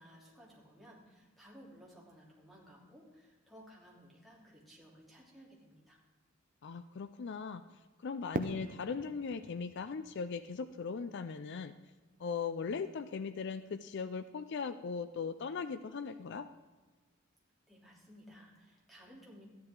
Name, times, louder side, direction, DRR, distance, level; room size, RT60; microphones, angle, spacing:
voice 1, 0.0-6.0 17.7-19.4, equal, ahead, -4 dB, 2.9 m, -57 dB
voice 2, 6.6-7.6 8.0-11.7 12.2-16.5, left 5 dB, 55° left, 12 dB, 0.4 m, -39 dB
Fireworks, 8.3-11.4, right 2 dB, 40° right, 0.6 m, -42 dB
14.0 x 10.5 x 3.7 m, 1.3 s
head